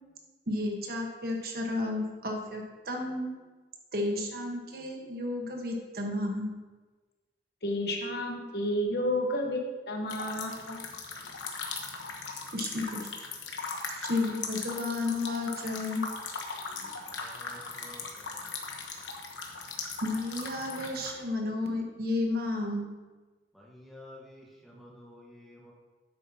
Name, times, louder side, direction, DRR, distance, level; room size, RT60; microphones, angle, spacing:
voice 1, 0.5-3.3 3.9-6.5 12.5-13.1 14.0-16.0 20.0-22.9, left 2 dB, 55° right, 2 dB, 1.2 m, -32 dB
voice 2, 7.6-9.6 9.9-10.8, left 1 dB, 55° left, 1 dB, 1.1 m, -31 dB
sound 1, 10.1-21.1, left 4 dB, 85° left, 1.1 m, -39 dB
voice 3, 16.7-18.5 23.5-25.7, left 1 dB, ahead, -4 dB, 1.4 m, -52 dB
10.0 x 8.1 x 2.8 m, 1.3 s
head